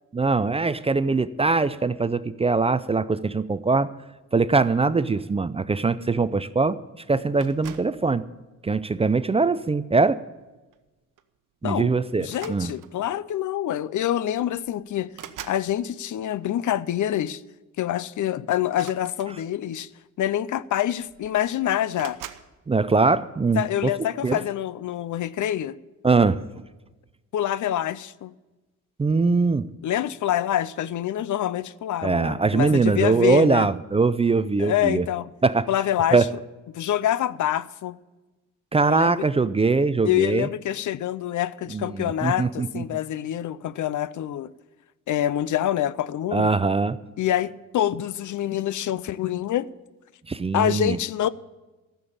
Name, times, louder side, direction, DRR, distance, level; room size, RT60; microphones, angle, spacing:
voice 1, 0.1-3.9 4.3-6.8 7.1-8.3 8.6-10.2 11.6-12.7 22.7-23.9 24.2-24.4 26.0-26.4 29.0-29.7 32.0-35.1 35.4-35.7 36.1-36.3 38.7-40.5 41.7-42.8 46.3-47.0 50.3-51.0, right 4 dB, 20° right, 0.4 m, -22 dB
sound 1, 7.4-8.0 8.9-9.2 10.7-10.9 11.2-11.4 12.2-13.1 14.1-14.2 14.5-15.7 18.6-19.7 20.6-20.7 21.0-21.5 22.0-22.5, right 10 dB, 75° right, 0.9 m, -43 dB
voice 2, 12.2-15.1 15.4-17.4 17.8-19.9 20.2-22.2 23.5-25.8 27.3-28.3 29.8-33.7 34.6-35.3 35.7-36.2 36.7-38.0 38.9-39.3 40.0-44.5 45.1-46.5 47.2-49.7 50.5-51.3, left 11 dB, 70° left, 0.5 m, -26 dB
14.0 x 7.0 x 8.7 m
cardioid pair, 125°, 32 cm